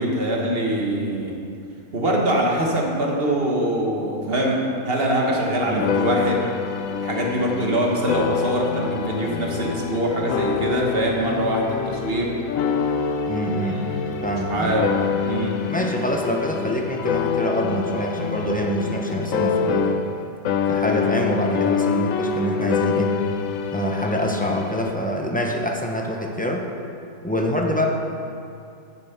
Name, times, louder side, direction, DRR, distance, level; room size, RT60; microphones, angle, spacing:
voice 1, 0.0-1.3 1.9-6.5 7.0-12.3 13.8-14.1 14.5-14.9 15.2-15.6, right 1 dB, 40° right, -1 dB, 1.4 m, -23 dB
sound 1, 5.8-20.2 20.5-24.9, left 7 dB, 65° left, 1.0 m, -26 dB
voice 2, 13.3-13.8 14.2-14.8 15.7-20.0 20.7-23.2 23.7-26.7 27.2-27.8, equal, 10° left, 0 dB, 0.4 m, -25 dB
8.9 x 7.2 x 5.8 m, 2.5 s
omnidirectional pair, 1.6 m